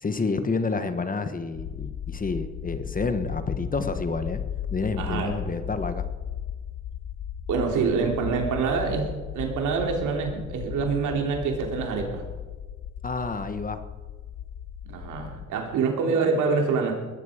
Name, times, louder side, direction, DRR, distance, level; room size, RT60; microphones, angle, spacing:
voice 1, 0.0-4.4 4.7-6.1 13.0-13.8, left 4 dB, 30° left, 10 dB, 1.3 m, -29 dB
sound 1, 1.5-15.5, left 9 dB, 65° left, 1.1 m, -36 dB
voice 2, 5.0-5.3 7.5-12.2 14.8-16.9, right 5 dB, 85° right, 2 dB, 3.1 m, -26 dB
20.0 x 12.0 x 5.0 m, 1.3 s
cardioid pair, 90°, 30 cm